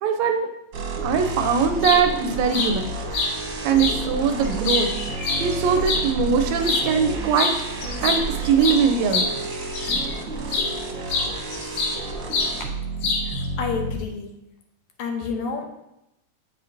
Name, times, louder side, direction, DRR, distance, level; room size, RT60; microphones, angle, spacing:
voice 1, 0.0-0.5 1.0-3.0 3.6-4.9 5.4-7.5 8.0-9.3, right 6 dB, 80° right, 6 dB, 1.7 m, -21 dB
sound 1, 0.7-14.0, right 3 dB, 60° right, 1.2 m, -31 dB
sound 2, 1.6-2.0 2.5-2.7 3.1-3.3 3.8-4.0 4.4-6.0 6.6-6.9 7.3-7.6 7.8-10.1 10.5-10.7 11.1-12.0 12.3-12.5 13.0-13.4, left 4 dB, 65° left, 1.5 m, -25 dB
voice 2, 13.3-14.3 15.0-15.9, left 5 dB, 85° left, 2 dB, 2.2 m, -30 dB
7.6 x 5.7 x 2.5 m, 0.85 s
omnidirectional pair, 3.3 m